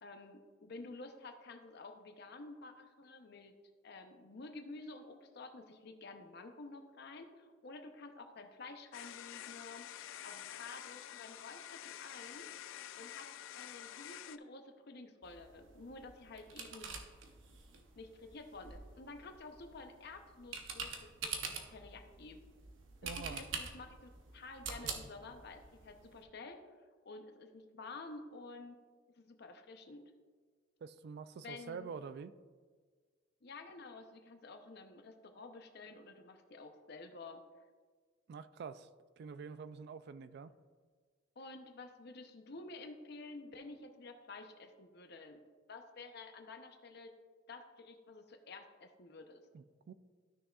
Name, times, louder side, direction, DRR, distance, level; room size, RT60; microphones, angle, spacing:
voice 1, 0.0-3.5 3.8-9.9 10.2-12.5 12.9-13.3 13.5-16.9 18.0-22.4 23.0-26.6 27.0-28.8 29.2-30.1 31.4-31.9 33.4-37.4 41.4-45.4 45.7-47.1 47.5-49.4, left 3 dB, 60° left, 0.7 m, -51 dB
sound 1, 8.9-14.4, left 11 dB, 85° left, 0.3 m, -48 dB
sound 2, 15.2-26.2, right 5 dB, 85° right, 0.9 m, -47 dB
voice 2, 23.0-23.4 30.8-32.4 38.3-38.9 39.2-40.5 49.5-49.9, right 5 dB, 55° right, 0.3 m, -46 dB
13.0 x 6.1 x 2.4 m
head